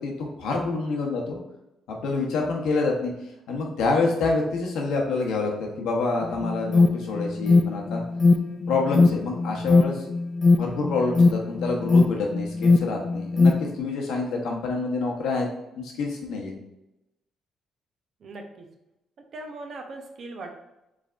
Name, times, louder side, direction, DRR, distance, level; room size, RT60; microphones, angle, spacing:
voice 1, 0.0-1.4 1.9-3.1 3.5-8.0 8.7-10.1 10.6-15.5 15.8-16.5, left 3 dB, 85° left, 0 dB, 0.9 m, -27 dB
Alarm, 6.2-13.7, left 3 dB, 40° left, 0.3 m, -20 dB
voice 2, 18.2-18.7 19.2-20.5, right 2 dB, 60° right, 3 dB, 0.7 m, -39 dB
4.9 x 3.3 x 2.5 m, 0.90 s
cardioid pair, 90°, 0 cm